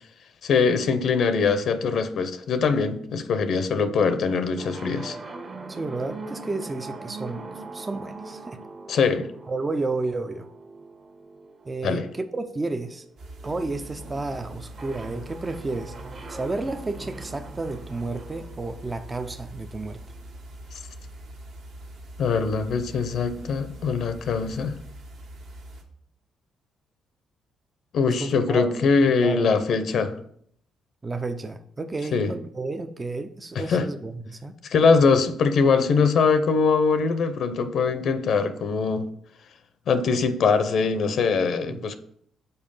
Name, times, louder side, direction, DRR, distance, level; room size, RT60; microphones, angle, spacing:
voice 1, 0.4-5.2 8.9-9.3 11.8-12.1 20.7-20.8 22.2-24.8 27.9-30.2 32.1-32.3 33.5-33.9 34.6-39.1 39.9-42.0, left 5 dB, 65° left, 0.7 m, -22 dB
sound 1, 4.6-20.3, right 3 dB, 45° right, 1.2 m, -42 dB
voice 2, 5.7-7.5 7.7-8.6 9.5-10.5 11.7-13.0 13.4-15.9 16.3-20.0 28.2-29.5 31.0-34.5 41.6-41.8, right 3 dB, 25° right, 0.5 m, -31 dB
sound 2, 13.2-25.8, right 1 dB, 65° right, 1.5 m, -43 dB
5.5 x 4.4 x 5.5 m
cardioid pair, 90°, 0 cm